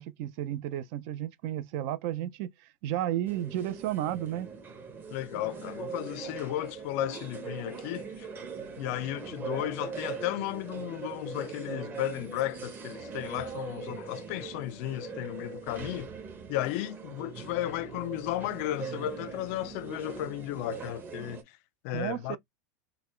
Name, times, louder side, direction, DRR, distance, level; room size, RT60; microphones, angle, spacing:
voice 1, 0.0-2.5 2.8-4.5 17.6-17.7 21.9-22.4, right 12 dB, 55° right, 0.6 m, -33 dB
sound 1, 3.3-21.4, right 5 dB, 20° right, 0.9 m, -41 dB
voice 2, 5.1-8.3 8.8-16.1 16.5-21.4 21.8-22.4, left 15 dB, 55° left, 0.4 m, -34 dB
4.0 x 2.2 x 3.1 m
supercardioid pair, 140°, 9 cm